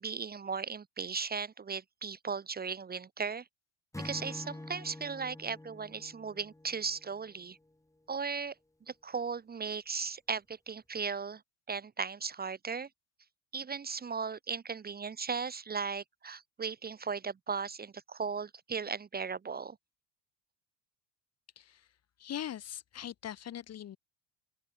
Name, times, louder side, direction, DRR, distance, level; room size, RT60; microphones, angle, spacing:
voice 1, 0.0-3.4 4.0-7.6 8.1-8.5 8.9-11.4 11.7-12.9 13.5-19.8, right 5 dB, 20° right, 1.3 m, -37 dB
Acoustic guitar / Strum, 3.9-7.4, left 1 dB, 5° left, 5.2 m, -46 dB
voice 2, 21.6-21.9 22.2-24.0, left 10 dB, 35° left, 1.9 m, -41 dB
open air
figure-of-eight pair, 65°, 42 cm